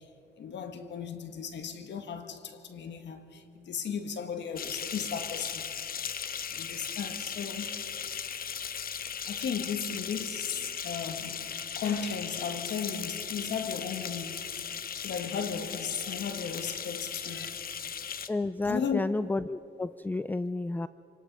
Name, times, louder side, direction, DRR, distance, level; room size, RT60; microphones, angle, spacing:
voice 1, 0.4-5.7 6.5-8.1 9.3-14.5 15.0-17.7 18.7-19.0, left 6 dB, 65° left, 1.9 m, -36 dB
sound 1, 4.6-18.3, left 7 dB, 45° left, 1.0 m, -37 dB
voice 2, 18.3-20.9, left 2 dB, 10° left, 0.4 m, -31 dB
27.0 x 18.0 x 5.5 m
cardioid pair, 90°, 20 cm